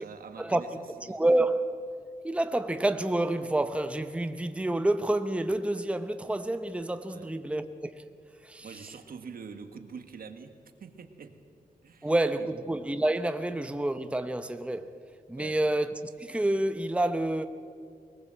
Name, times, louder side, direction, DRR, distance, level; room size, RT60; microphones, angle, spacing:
voice 1, 0.0-1.2 7.0-7.3 8.6-11.4 11.8-12.1 12.4-12.5 15.4-15.6, right 5 dB, 80° right, 1.6 m, -45 dB
voice 2, 1.0-1.8 2.2-8.1 8.4-8.7 12.0-14.9 15.3-17.5, right 1 dB, 10° right, 0.8 m, -28 dB
21.5 x 20.0 x 7.7 m
wide cardioid pair, 120°, 15 cm